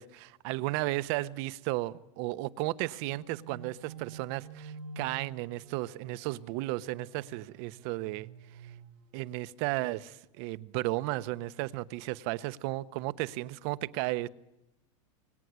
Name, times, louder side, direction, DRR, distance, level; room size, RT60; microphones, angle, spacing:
voice 1, 0.0-8.3 9.1-14.3, right 18 dB, 50° right, 1.0 m, -34 dB
sound 1, 3.1-9.3, right 5 dB, 80° right, 2.2 m, -49 dB
24.5 x 24.5 x 9.6 m
supercardioid pair, 155°, 17 cm